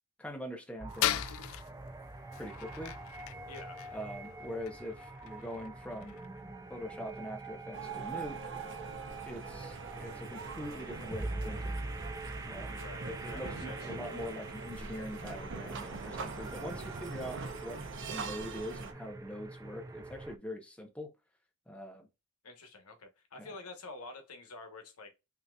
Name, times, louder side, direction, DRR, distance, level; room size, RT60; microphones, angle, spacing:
voice 1, 0.2-1.4 2.4-2.9 3.9-6.2 6.7-8.7 9.2-11.8 12.4-17.8 18.1-21.1 21.7-22.1 23.4-23.5, equal, 5° left, 0.8 m, -43 dB
sound 1, 0.8-20.4, right 2 dB, 15° right, 0.4 m, -44 dB
sound 2, 0.9-7.6, left 12 dB, 65° left, 0.3 m, -40 dB
voice 2, 3.4-3.8 12.7-14.0 22.4-25.1, left 3 dB, 85° left, 1.1 m, -48 dB
sound 3, 7.7-18.9, right 4 dB, 55° right, 0.7 m, -43 dB
5.5 x 2.9 x 2.3 m
head